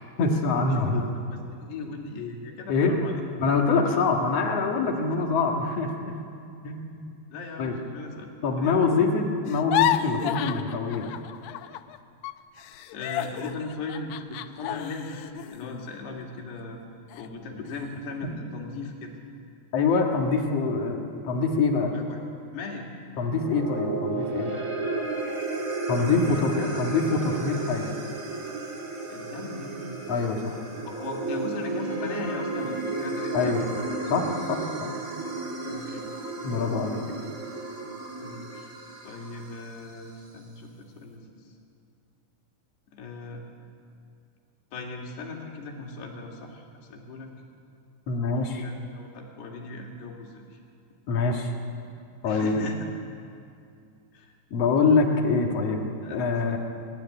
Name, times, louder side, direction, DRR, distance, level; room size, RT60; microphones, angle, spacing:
voice 1, 0.2-1.1 2.7-3.0 3.4-6.2 6.6-7.1 7.6-7.8 8.4-11.1 19.7-21.9 23.2-24.5 25.9-27.9 30.1-30.6 33.3-33.7 34.1-34.9 36.4-37.0 48.1-48.6 51.1-51.5 52.2-52.7 54.5-56.6, left 4 dB, 50° left, 2 dB, 2.0 m, -25 dB
voice 2, 1.3-3.2 3.9-4.1 7.3-9.0 12.9-16.8 17.1-19.1 21.9-22.2 22.5-22.9 26.2-26.7 29.1-30.0 30.9-33.7 35.7-36.1 38.2-38.7 39.0-41.3 42.9-43.4 44.7-46.6 46.9-47.3 48.1-50.6 52.2-52.9 54.1-54.3 56.0-56.6, left 3 dB, 70° left, 0 dB, 4.3 m, -38 dB
sound 1, 9.5-12.0 12.2-16.6 17.1-17.3 17.7-18.2, left 12 dB, 90° left, 2.0 m, -31 dB
sound 2, 23.4-39.8, right 3 dB, 55° right, 0.9 m, -33 dB
24.0 x 12.0 x 9.8 m, 2.4 s
omnidirectional pair, 5.0 m